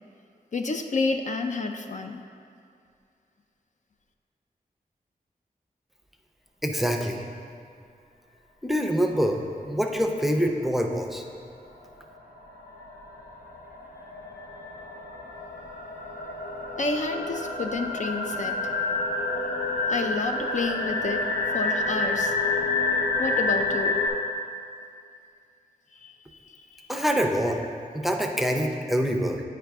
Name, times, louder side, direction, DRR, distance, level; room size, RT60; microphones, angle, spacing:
voice 1, 0.5-2.2 16.8-18.6 19.9-21.2 21.5-22.4 23.2-24.0 26.0-26.1, left 3 dB, 55° left, 5 dB, 0.4 m, -29 dB
voice 2, 6.6-7.2 8.6-11.2 26.9-27.6 27.9-29.4, equal, ahead, 3 dB, 0.5 m, -25 dB
sound 1, 11.3-11.4 11.7-24.1, left 3 dB, 85° left, 0.9 m, -29 dB
9.3 x 4.8 x 3.4 m, 2.3 s
wide cardioid pair, 95°, 16 cm